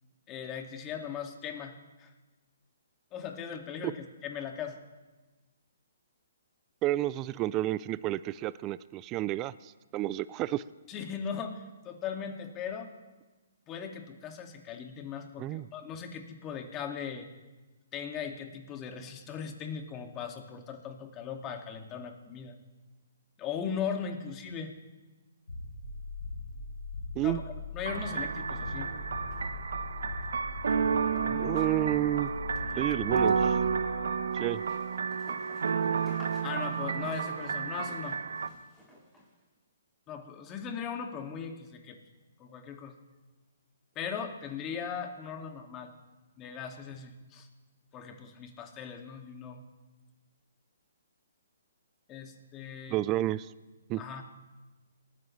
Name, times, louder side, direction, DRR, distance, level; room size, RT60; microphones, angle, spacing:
voice 1, 0.3-2.1 3.1-4.8 10.9-12.9 13.7-17.3 17.9-22.6 23.4-24.7 27.2-28.9 31.1-31.6 32.6-32.8 33.3-33.4 36.4-38.2 40.1-42.0 42.4-42.9 44.0-45.9 46.4-47.5 47.9-49.6 52.1-53.0 54.0-54.2, left 7 dB, 25° left, 4 dB, 2.1 m, -39 dB
voice 2, 6.8-10.6 15.4-15.7 27.2-27.4 31.4-32.3 32.8-33.6 34.3-34.6 52.9-53.5 53.9-54.0, right 15 dB, 25° right, 18 dB, 0.4 m, -30 dB
sound 1, 25.5-34.6, left 3 dB, 85° left, 3.6 m, -41 dB
sound 2, 27.8-38.5, right 6 dB, 70° right, 1.0 m, -31 dB
sound 3, 34.3-39.3, equal, 5° left, 5.9 m, -53 dB
28.5 x 13.5 x 3.2 m, 1.2 s
hypercardioid pair, 135°, 0 cm